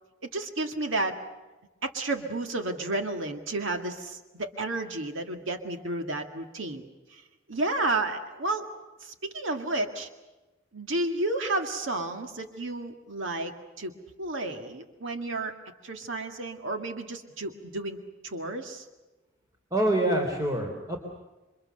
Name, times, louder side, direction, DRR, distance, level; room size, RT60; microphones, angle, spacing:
voice 1, 0.2-1.2 1.8-6.8 7.1-7.2 7.5-8.7 9.0-10.1 10.7-13.9 14.2-15.5 15.8-18.9, right 2 dB, 70° right, 5 dB, 2.1 m, -31 dB
voice 2, 19.7-21.0, right 1 dB, 20° right, 2 dB, 3.4 m, -26 dB
28.5 x 25.0 x 6.6 m, 1.1 s
head